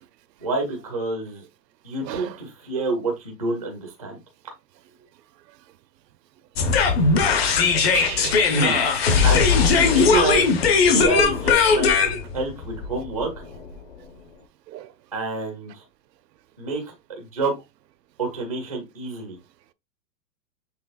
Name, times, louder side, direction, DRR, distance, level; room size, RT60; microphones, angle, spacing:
voice 1, 0.4-1.4 1.8-4.2 9.2-9.5 9.8-10.5 10.9-13.3 15.1-15.8 16.6-16.8 17.2-17.6 18.2-19.4, right 3 dB, 25° right, 0.3 m, -27 dB
sound 1, 6.6-13.7, left 5 dB, 40° left, 0.7 m, -19 dB
voice 2, 7.3-8.9 9.7-9.9 14.7-14.9, right 12 dB, 80° right, 0.6 m, -32 dB
5.9 x 3.3 x 2.2 m
hypercardioid pair, 170°, 50 cm